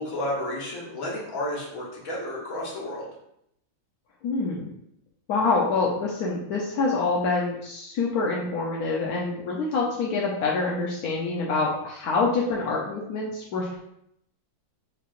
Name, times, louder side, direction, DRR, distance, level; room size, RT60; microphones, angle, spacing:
voice 1, 0.0-3.1, left 1 dB, 45° left, -4 dB, 1.6 m, -32 dB
voice 2, 4.2-4.7 5.3-13.8, left 3 dB, 65° left, -3 dB, 1.0 m, -26 dB
6.5 x 3.3 x 2.4 m, 0.76 s
omnidirectional pair, 2.2 m